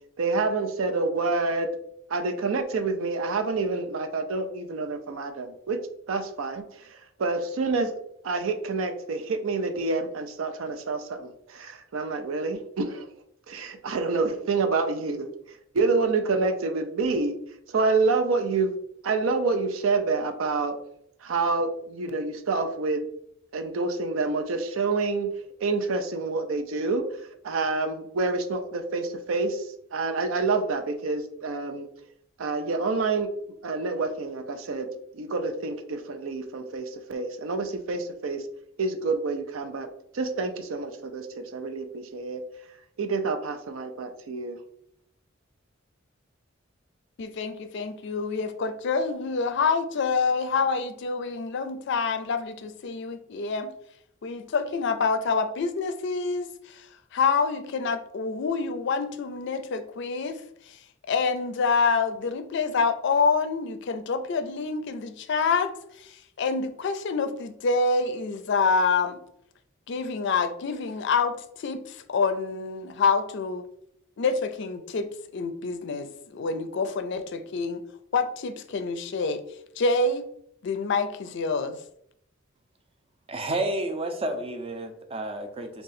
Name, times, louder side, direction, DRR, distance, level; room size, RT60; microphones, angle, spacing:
voice 1, 0.2-1.7 2.1-8.0 8.2-13.1 13.5-15.3 15.7-17.4 17.7-18.7 19.0-20.8 21.2-23.0 23.5-25.3 25.6-31.9 32.4-33.3 33.6-34.9 35.1-38.5 38.8-39.9 40.1-42.4 43.0-44.6, right 3 dB, 90° right, 7 dB, 0.5 m, -28 dB
voice 2, 47.2-53.7 54.2-56.9 57.1-60.4 60.7-60.8 61.1-65.7 66.0-69.2 69.9-73.6 74.2-77.8 78.1-79.4 79.8-80.3 80.6-81.8, left 4 dB, 60° left, 9 dB, 0.4 m, -27 dB
voice 3, 83.3-85.8, right 1 dB, 30° right, 6 dB, 0.5 m, -30 dB
3.7 x 2.3 x 4.0 m, 0.72 s
head